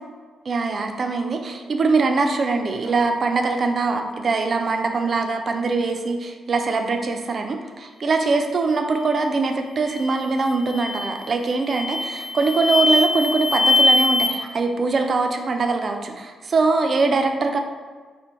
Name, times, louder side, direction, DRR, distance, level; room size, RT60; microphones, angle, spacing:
voice 1, 0.5-17.6, right 3 dB, 50° right, 4 dB, 0.4 m, -22 dB
sound 1, 9.9-10.2 10.7-11.2 11.7-14.3, left 2 dB, 60° left, 0.9 m, -21 dB
2.6 x 2.1 x 3.6 m, 1.5 s
supercardioid pair, 60°, 0 cm